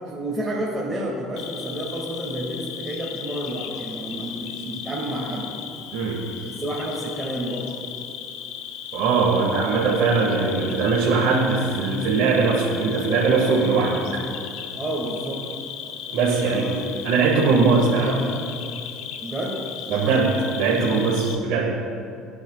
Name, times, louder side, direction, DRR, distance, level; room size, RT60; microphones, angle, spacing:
voice 1, 0.1-5.5 6.4-7.7 14.8-15.4 16.4-16.8 19.2-19.6, right 1 dB, 20° right, -5 dB, 2.1 m, -30 dB
Cricket, 1.4-21.4, left 8 dB, 75° left, 0.9 m, -36 dB
voice 2, 5.9-6.3 8.9-14.3 16.1-16.6 17.0-18.3 19.9-21.9, right 4 dB, 70° right, -4 dB, 1.8 m, -21 dB
18.0 x 9.5 x 2.4 m, 2.5 s
supercardioid pair, 95°, 0 cm